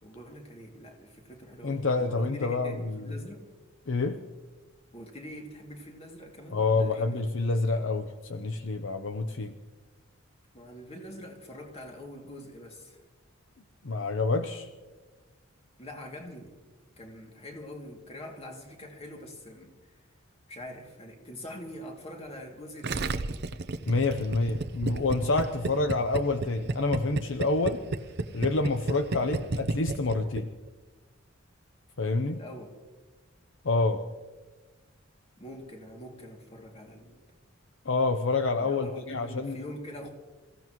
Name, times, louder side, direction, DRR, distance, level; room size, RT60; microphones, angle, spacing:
voice 1, 0.0-3.5 4.9-7.3 10.5-13.0 15.8-16.5 17.0-19.8 20.5-23.2 24.8-25.0 32.3-32.7 35.4-37.2 38.6-40.1, equal, 30° left, 2.6 m, -44 dB
voice 2, 1.6-3.1 3.9-4.2 6.5-9.5 13.8-14.7 23.9-27.8 28.3-30.5 32.0-32.4 33.6-34.0 37.8-39.6, left 3 dB, 70° left, 0.8 m, -27 dB
Gurgling, 22.8-30.4 30.7-30.8, right 2 dB, 55° right, 0.8 m, -31 dB
27.5 x 15.5 x 3.1 m
head